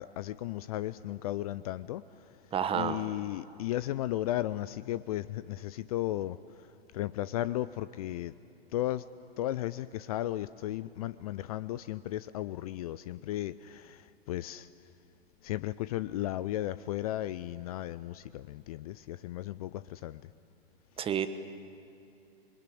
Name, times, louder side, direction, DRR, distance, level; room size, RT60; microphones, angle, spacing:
voice 1, 0.0-2.3 2.7-8.3 8.7-9.1 9.4-14.7 15.4-20.3, left 14 dB, 35° left, 16 dB, 0.5 m, -35 dB
voice 2, 2.5-3.0 21.0-21.3, right 9 dB, 15° right, 11 dB, 1.2 m, -29 dB
27.0 x 23.0 x 8.5 m, 2.7 s
figure-of-eight pair, 110°, 31 cm